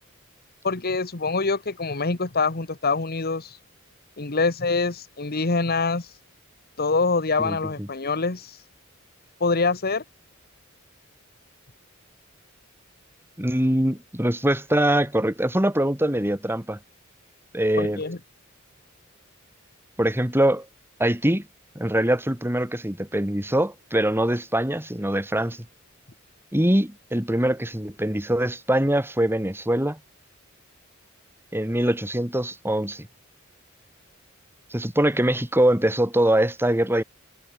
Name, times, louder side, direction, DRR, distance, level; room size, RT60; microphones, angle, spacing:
voice 1, 0.6-3.6 4.2-6.1 6.8-8.6 9.4-10.0 17.8-18.2, left 4 dB, 45° left, 1.4 m, -25 dB
voice 2, 7.4-7.9 13.4-16.8 17.5-18.0 20.0-20.7 21.0-21.4 21.7-25.6 26.5-30.0 31.5-33.1 34.7-37.0, right 1 dB, 10° right, 3.0 m, -23 dB
head